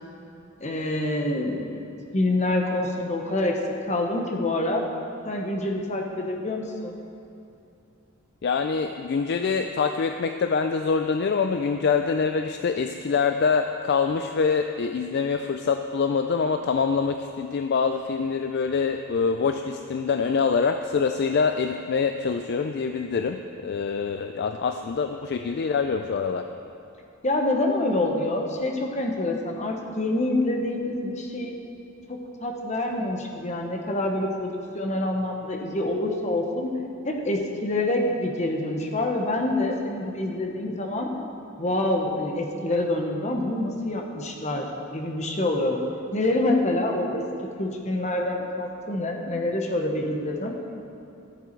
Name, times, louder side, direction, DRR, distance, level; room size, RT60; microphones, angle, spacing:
voice 1, 0.6-4.8 5.2-7.0 27.2-31.5 32.1-36.7 37.0-41.1 41.6-45.8 46.1-47.2 47.6-50.5, left 1 dB, 30° left, 2 dB, 1.0 m, -26 dB
voice 2, 8.4-26.5, left 5 dB, 50° left, 6 dB, 0.3 m, -25 dB
14.5 x 7.0 x 4.5 m, 2.8 s
head